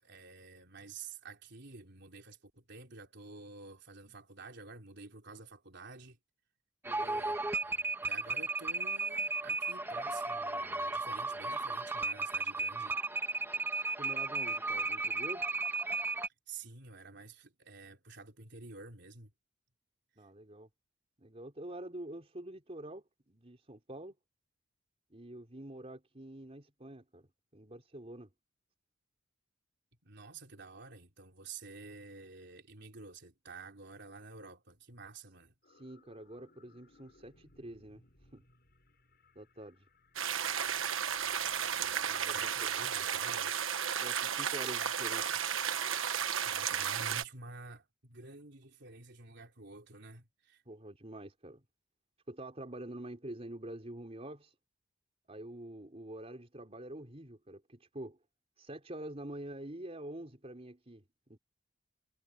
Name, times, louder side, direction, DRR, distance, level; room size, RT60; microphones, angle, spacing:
voice 1, 0.0-6.2 7.0-13.0 16.5-19.3 30.0-35.5 42.2-43.5 46.0-50.6, right 4 dB, 60° right, 3.8 m, -50 dB
sound 1, 6.8-16.3, right 3 dB, 10° right, 1.6 m, -35 dB
voice 2, 6.8-7.2 13.9-15.5 20.2-20.7 21.2-24.2 25.1-28.3 35.7-38.0 38.3-38.4 39.4-39.9 42.0-42.8 44.0-45.4 50.7-51.6 52.3-54.5 55.3-58.2 58.6-61.4, right 1 dB, 30° right, 3.8 m, -46 dB
sound 2, 35.6-46.9, left 2 dB, 55° left, 6.5 m, -64 dB
sound 3, 40.2-47.2, right 8 dB, 85° right, 1.3 m, -33 dB
head